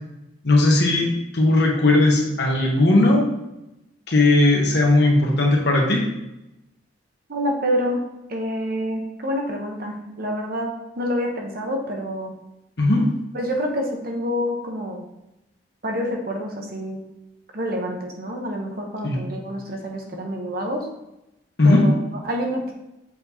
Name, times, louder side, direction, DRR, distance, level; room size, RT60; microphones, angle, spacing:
voice 1, 0.4-1.1 1.3-3.2 4.1-6.0 12.8-13.0 19.0-19.2 21.6-21.8, left 2 dB, 60° left, -1 dB, 1.3 m, -17 dB
voice 2, 7.3-8.0 8.3-12.3 13.3-15.0 15.8-17.0 17.5-20.9 21.6-22.0 22.2-22.7, equal, 50° right, 1 dB, 1.1 m, -27 dB
7.5 x 4.4 x 2.9 m, 0.91 s
head